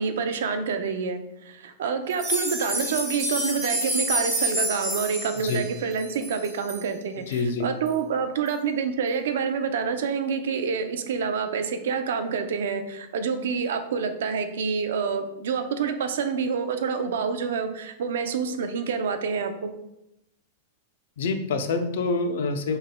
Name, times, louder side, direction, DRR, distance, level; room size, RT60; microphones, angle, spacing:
voice 1, 0.0-19.7, right 6 dB, 70° right, 8 dB, 0.5 m, -27 dB
sound 1, 2.1-6.8 7.3-7.4 7.9-8.0 8.5-8.6, right 1 dB, 10° right, 1.0 m, -28 dB
voice 2, 7.3-7.7 21.2-22.8, left 3 dB, 60° left, 7 dB, 0.5 m, -26 dB
5.5 x 3.5 x 2.2 m, 0.85 s
supercardioid pair, 180°, 0 cm